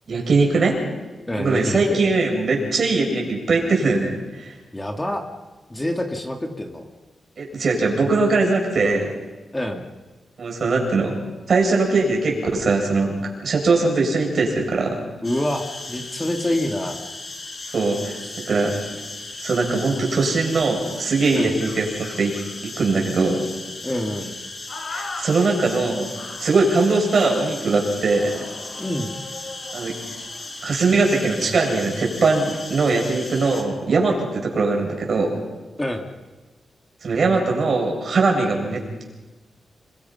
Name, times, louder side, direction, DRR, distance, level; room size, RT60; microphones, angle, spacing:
voice 1, 0.1-0.8 1.4-4.5 7.4-9.1 10.4-11.2 11.5-13.2 13.4-15.0 17.7-18.8 19.4-21.9 22.2-22.4 22.6-23.4 24.9-26.1 26.4-28.5 29.7-30.0 30.6-35.4 37.0-39.0, right 3 dB, 55° right, 0 dB, 7.6 m, -21 dB
voice 2, 1.3-2.0 4.7-5.2 5.7-6.8 9.5-9.8 15.2-17.0 18.2-18.4 21.3-21.6 23.8-24.3 28.8-29.1 35.8-36.1, left 1 dB, 15° left, 3 dB, 2.5 m, -26 dB
sound 1, 15.2-33.6, left 2 dB, 35° left, 4.8 m, -36 dB
sound 2, 24.7-25.3 26.1-26.6 28.1-30.5, left 3 dB, 60° left, 6.2 m, -38 dB
29.0 x 24.0 x 5.9 m, 1.2 s
wide cardioid pair, 105°, 0 cm